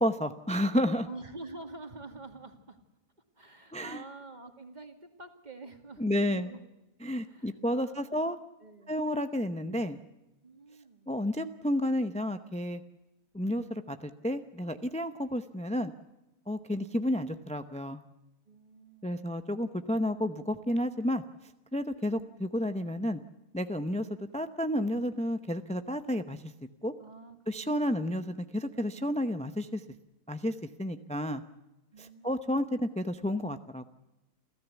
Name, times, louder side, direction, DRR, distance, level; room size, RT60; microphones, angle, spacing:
voice 1, 0.0-1.1 3.7-4.0 6.0-6.5 7.0-8.4 8.9-10.0 11.1-12.8 13.3-15.9 16.5-18.0 19.0-21.2 21.7-23.2 23.5-24.1 24.3-26.5 26.8-26.9 27.5-29.8 30.3-31.4 32.0-33.9, equal, 10° left, 9 dB, 0.3 m, -31 dB
voice 2, 1.1-2.8 3.4-6.6 7.2-8.3 8.6-9.0 10.4-11.1 18.5-19.3 27.0-28.0 31.9-32.7, right 3 dB, 30° right, 5 dB, 2.3 m, -48 dB
28.5 x 14.0 x 8.2 m, 1.0 s
omnidirectional pair, 1.6 m